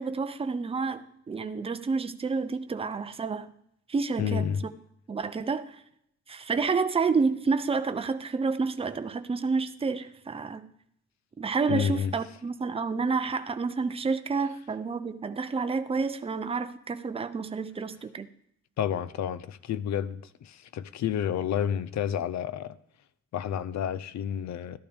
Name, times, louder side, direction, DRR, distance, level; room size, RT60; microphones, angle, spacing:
voice 1, 0.0-3.5 3.9-4.5 5.1-5.8 6.3-10.7 11.4-18.3, right 4 dB, 20° right, 0.5 m, -29 dB
voice 2, 4.2-4.6 11.7-12.2 18.8-22.8 23.3-24.8, left 9 dB, 70° left, 0.6 m, -30 dB
13.5 x 11.5 x 3.5 m
wide cardioid pair, 180°, 29 cm